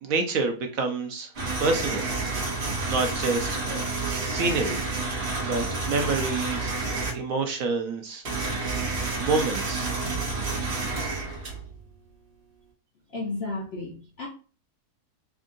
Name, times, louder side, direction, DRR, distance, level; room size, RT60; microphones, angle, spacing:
voice 1, 0.0-1.3 1.6-2.0 2.9-4.8 5.4-6.7 7.1-8.2 8.7-8.9 9.1-9.9, right 3 dB, 65° right, 1.0 m, -28 dB
sound 1, 1.3-7.1 8.2-11.9, right 3 dB, 40° right, 1.3 m, -29 dB
voice 2, 13.1-14.3, left 2 dB, 55° left, 0.7 m, -33 dB
3.6 x 2.5 x 3.7 m
omnidirectional pair, 1.8 m